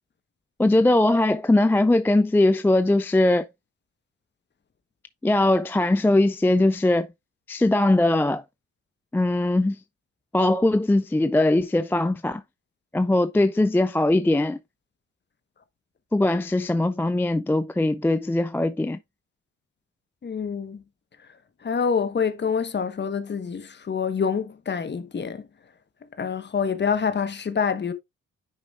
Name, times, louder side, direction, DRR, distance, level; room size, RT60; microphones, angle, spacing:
voice 1, 0.6-3.5 5.2-7.1 7.5-8.4 9.1-9.8 10.3-12.4 12.9-14.6 16.1-19.0, left 2 dB, 5° left, 0.4 m, -20 dB
voice 2, 20.2-20.8 21.6-25.5 26.2-27.9, left 6 dB, 35° left, 1.2 m, -26 dB
9.6 x 5.2 x 2.4 m
cardioid pair, 90°, 30 cm